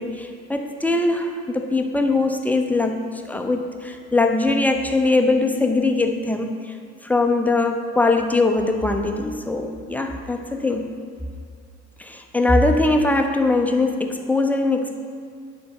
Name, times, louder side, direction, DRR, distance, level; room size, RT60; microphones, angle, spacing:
voice 1, 0.0-3.0 3.3-6.8 7.0-10.9 12.0-15.0, left 2 dB, 5° left, 4 dB, 0.6 m, -21 dB
9.4 x 4.4 x 6.1 m, 2.2 s
figure-of-eight pair, 65°, 42 cm